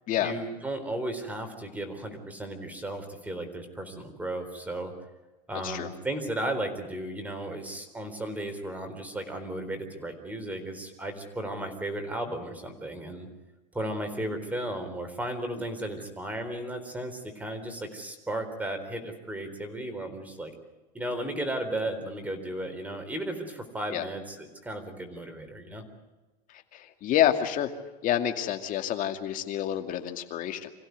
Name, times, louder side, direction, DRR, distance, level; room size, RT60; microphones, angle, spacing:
voice 1, 0.2-4.9 5.5-13.3 13.7-20.5 20.9-25.8, right 1 dB, 5° right, 6 dB, 4.1 m, -35 dB
voice 2, 26.7-27.7 28.0-30.7, left 11 dB, 40° left, 6 dB, 2.4 m, -28 dB
26.0 x 16.0 x 9.5 m, 1.1 s
supercardioid pair, 135°, 21 cm